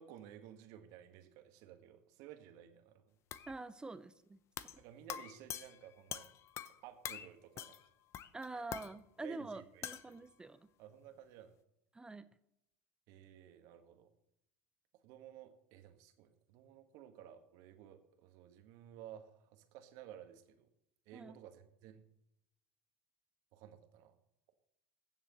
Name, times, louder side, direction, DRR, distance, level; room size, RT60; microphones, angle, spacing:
voice 1, 0.0-3.1 4.8-6.3 6.8-7.7 8.5-8.6 9.2-10.3 10.8-11.5 13.1-14.1 15.0-20.7 21.0-22.0 23.5-24.2, right 10 dB, 55° right, 7 dB, 1.5 m, -55 dB
sound 1, 3.3-3.6 4.6-4.8 5.1-6.8 7.0-7.3 7.6-7.9 8.1-8.9 9.8-10.1, left 10 dB, 40° left, 0.7 m, -45 dB
voice 2, 3.5-4.4 8.3-10.7 11.9-12.3 21.1-21.4, right 3 dB, 10° right, 14 dB, 0.5 m, -46 dB
22.0 x 7.4 x 3.1 m, 0.80 s
hypercardioid pair, 85°, 7 cm